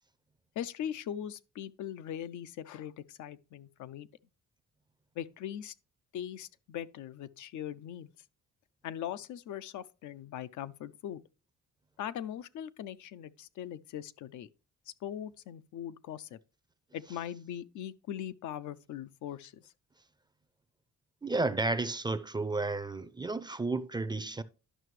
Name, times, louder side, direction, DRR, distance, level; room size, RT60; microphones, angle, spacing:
voice 1, 0.6-4.1 5.2-5.7 6.1-8.1 8.8-11.2 12.0-14.5 15.0-16.4 16.9-19.7, left 10 dB, 75° left, 0.5 m, -40 dB
voice 2, 21.2-24.4, right 3 dB, 15° right, 0.5 m, -32 dB
11.0 x 5.7 x 3.1 m
cardioid pair, 90°, 30 cm